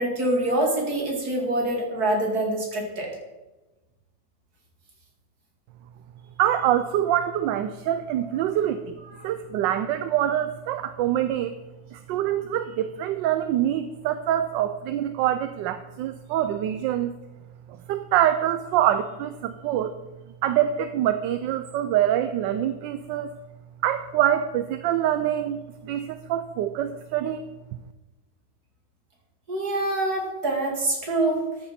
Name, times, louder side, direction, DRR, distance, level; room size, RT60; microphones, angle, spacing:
voice 1, 0.0-3.1 29.5-31.4, right 1 dB, 50° right, 0 dB, 2.9 m, -25 dB
voice 2, 6.4-9.0 9.2-11.6 11.9-17.1 17.7-20.0 20.4-23.4 23.8-27.4, right 11 dB, 75° right, 11 dB, 1.2 m, -25 dB
13.5 x 8.7 x 4.3 m, 1.1 s
omnidirectional pair, 2.1 m